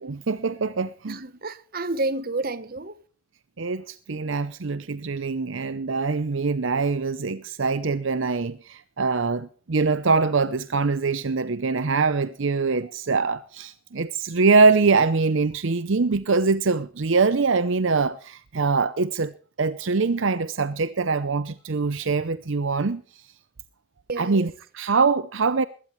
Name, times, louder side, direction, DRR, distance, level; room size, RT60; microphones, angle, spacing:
voice 1, 0.0-1.2 3.6-23.0 24.2-25.7, right 4 dB, 65° right, 0.7 m, -23 dB
voice 2, 1.1-3.0 24.1-24.5, right 2 dB, 45° right, 1.1 m, -30 dB
21.0 x 16.5 x 3.2 m
head